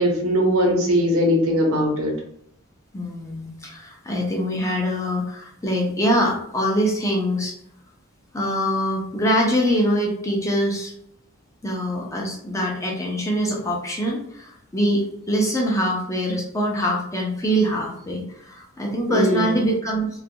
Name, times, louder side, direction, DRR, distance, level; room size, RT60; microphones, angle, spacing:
voice 1, 0.0-2.2 19.1-19.6, equal, 85° right, 0 dB, 0.8 m, -20 dB
voice 2, 2.9-7.6 8.3-10.9 11.6-20.1, equal, 15° left, -1 dB, 0.5 m, -24 dB
2.3 x 2.2 x 2.7 m, 0.72 s
head